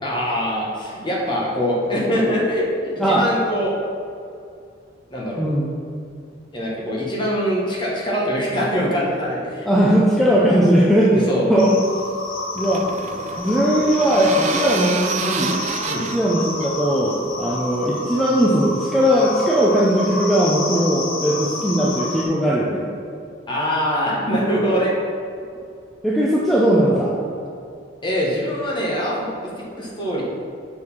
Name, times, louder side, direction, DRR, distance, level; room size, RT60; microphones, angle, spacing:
voice 1, 0.0-2.7 3.0-3.7 5.1-5.5 6.5-9.7 10.3-10.4 11.1-11.4 15.9-16.1 23.5-24.9 28.0-30.2, equal, 25° left, -5 dB, 1.5 m, -23 dB
voice 2, 5.4-5.7 9.7-11.2 11.5-11.7 12.5-12.8 13.4-15.6 16.1-22.8 26.0-27.2, equal, ahead, -6 dB, 0.6 m, -18 dB
cicadas long, 11.6-22.2, left 2 dB, 85° left, 1.3 m, -30 dB
sound 1, 12.0-17.6, right 6 dB, 35° right, 0.3 m, -29 dB
6.3 x 4.9 x 5.5 m, 2.4 s
head